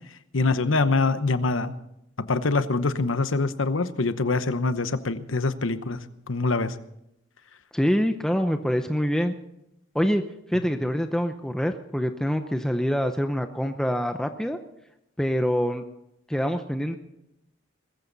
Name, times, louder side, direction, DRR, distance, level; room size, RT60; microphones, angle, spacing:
voice 1, 0.3-1.7 2.2-6.0 6.3-6.7, left 3 dB, 90° left, 12 dB, 1.0 m, -24 dB
voice 2, 7.7-9.3 9.9-10.2 10.5-14.6 15.2-15.8 16.3-17.0, equal, 5° left, 6 dB, 0.7 m, -25 dB
21.5 x 14.0 x 4.0 m, 0.83 s
head